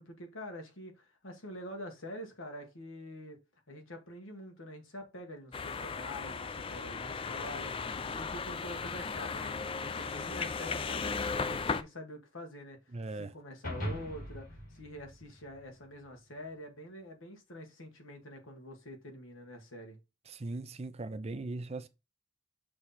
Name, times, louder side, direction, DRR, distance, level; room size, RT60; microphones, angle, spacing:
voice 1, 0.0-3.4 3.7-20.0, left 1 dB, 80° left, 1.6 m, -46 dB
sound 1, 5.5-11.8, left 5 dB, 25° left, 0.4 m, -36 dB
voice 2, 12.9-13.3 20.3-21.9, right 2 dB, 30° right, 0.5 m, -39 dB
sound 2, 13.6-16.1, equal, 40° left, 2.8 m, -41 dB
6.3 x 3.0 x 5.6 m
head